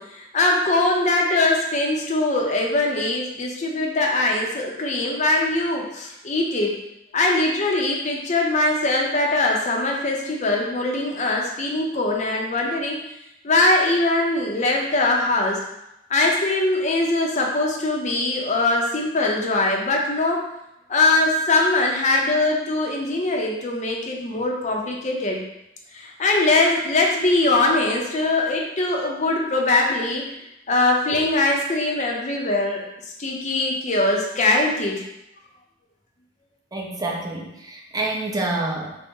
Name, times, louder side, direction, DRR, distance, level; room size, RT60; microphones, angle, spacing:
voice 1, 0.0-6.7 7.1-13.0 13.4-15.6 16.1-20.4 20.9-25.4 25.9-30.2 30.7-32.8 33.2-35.0, left 2 dB, 40° left, 0 dB, 0.6 m, -21 dB
voice 2, 36.7-39.0, right 2 dB, 20° right, 0 dB, 0.5 m, -27 dB
4.0 x 2.1 x 3.6 m, 0.86 s
head